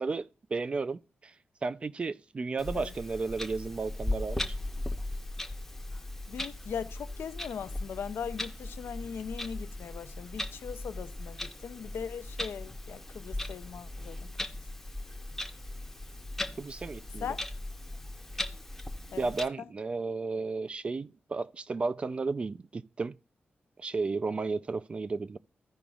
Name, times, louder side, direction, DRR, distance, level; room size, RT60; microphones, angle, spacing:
voice 1, 0.0-1.3 1.6-4.6 16.6-17.3 19.2-23.2 23.8-25.4, right 4 dB, 30° right, 0.3 m, -33 dB
Clock, 2.6-19.4, left 1 dB, 10° left, 0.7 m, -38 dB
voice 2, 6.3-14.3 17.2-17.4 19.1-19.3, left 7 dB, 75° left, 0.5 m, -39 dB
15.0 x 5.0 x 2.4 m
wide cardioid pair, 160°, 4 cm